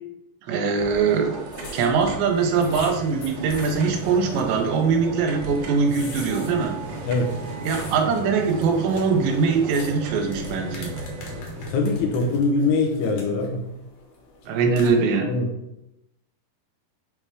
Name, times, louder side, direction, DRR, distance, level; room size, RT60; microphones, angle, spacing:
voice 1, 0.5-1.4 1.7-6.8 7.6-10.9 14.5-15.3, right 5 dB, 85° right, 4 dB, 2.9 m, -22 dB
sound 1, 0.8-11.4, right 4 dB, 70° right, 2.6 m, -37 dB
sound 2, 0.9-14.9, left 3 dB, 65° left, 2.6 m, -44 dB
sound 3, 2.3-12.4, right 1 dB, 55° right, 2.2 m, -37 dB
voice 2, 7.0-7.4 11.6-13.6 15.2-15.5, left 3 dB, 80° left, 3 dB, 2.6 m, -23 dB
7.1 x 3.3 x 4.8 m, 0.87 s
omnidirectional pair, 5.1 m